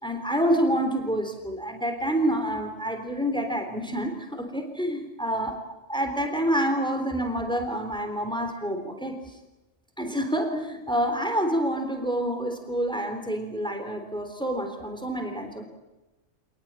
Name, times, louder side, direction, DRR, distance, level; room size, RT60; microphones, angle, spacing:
voice 1, 0.0-5.6 5.9-9.4 10.0-15.7, equal, 5° left, 6 dB, 3.6 m, -28 dB
27.0 x 20.0 x 9.0 m, 1.1 s
omnidirectional pair, 1.3 m